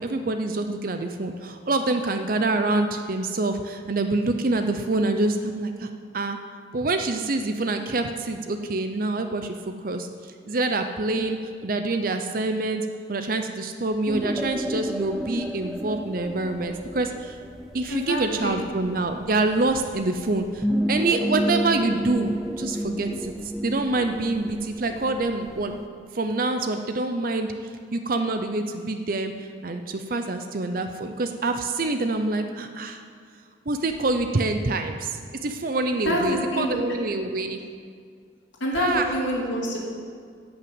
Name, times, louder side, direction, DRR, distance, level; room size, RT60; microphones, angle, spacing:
voice 1, 0.0-5.9 6.1-6.4 6.7-9.6 9.8-11.4 11.6-17.4 17.7-25.7 26.1-27.5 27.9-33.0 33.7-37.6 38.7-39.0, right 2 dB, 50° right, 7 dB, 0.6 m, -26 dB
sound 1, 14.1-25.9, equal, ahead, 0.3 m, -31 dB
voice 2, 17.9-18.6 36.0-36.9 38.6-39.8, equal, 85° left, -3 dB, 2.8 m, -26 dB
16.5 x 5.9 x 7.8 m, 2.1 s
head